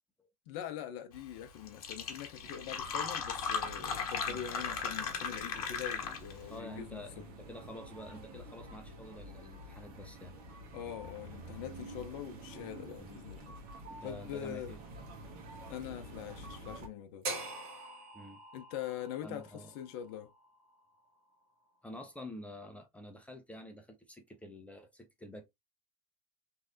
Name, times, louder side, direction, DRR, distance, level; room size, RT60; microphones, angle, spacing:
voice 1, 0.5-7.3 10.7-13.6 14.0-14.7 15.7-17.3 18.5-20.3, left 10 dB, 60° left, 0.6 m, -43 dB
Fill (with liquid), 1.4-1.5 1.7-6.4, left 6 dB, 80° left, 0.9 m, -37 dB
sound 1, 2.4-16.9, right 1 dB, 50° right, 1.1 m, -49 dB
voice 2, 6.5-10.3 13.0-13.2 13.9-14.8 18.1-18.4 19.2-19.7 21.8-25.4, left 1 dB, 5° left, 0.7 m, -48 dB
sound 2, 17.2-21.4, right 2 dB, 75° right, 1.3 m, -44 dB
3.1 x 2.7 x 2.5 m
hypercardioid pair, 95°, 19 cm